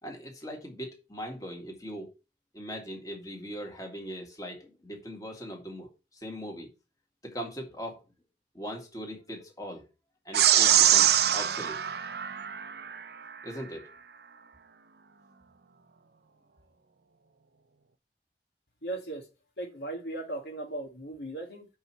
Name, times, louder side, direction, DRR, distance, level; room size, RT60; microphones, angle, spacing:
voice 1, 0.0-2.1 2.5-6.7 7.2-8.0 8.5-9.9 10.3-11.8 13.4-13.9, equal, 20° left, 2.0 m, -40 dB
sound 1, 10.3-13.0, right 11 dB, 65° right, 0.6 m, -23 dB
voice 2, 18.8-19.3 19.6-21.7, right 2 dB, 75° left, 2.1 m, -37 dB
5.7 x 5.4 x 6.1 m
head